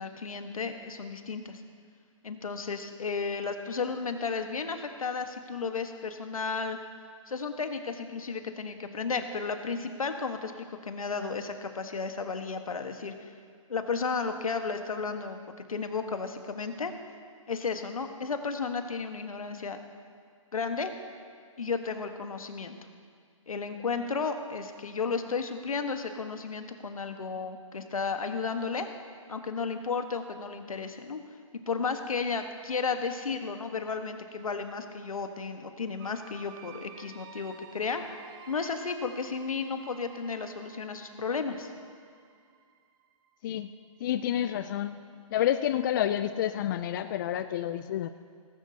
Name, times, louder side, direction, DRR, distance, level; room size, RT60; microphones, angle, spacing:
voice 1, 0.0-1.6 2.2-6.8 7.3-13.3 13.7-15.4 15.7-16.9 17.5-19.8 20.5-20.9 21.6-22.7 23.5-28.9 29.3-31.2 31.7-38.0 38.5-41.7, left 5 dB, 85° left, 7 dB, 1.3 m, -33 dB
sound 1, 36.0-43.6, right 8 dB, 40° right, 0.8 m, -52 dB
voice 2, 44.0-45.0 45.3-48.1, left 11 dB, 35° left, 10 dB, 0.4 m, -29 dB
18.0 x 16.0 x 2.8 m, 2.1 s
hypercardioid pair, 145°, 17 cm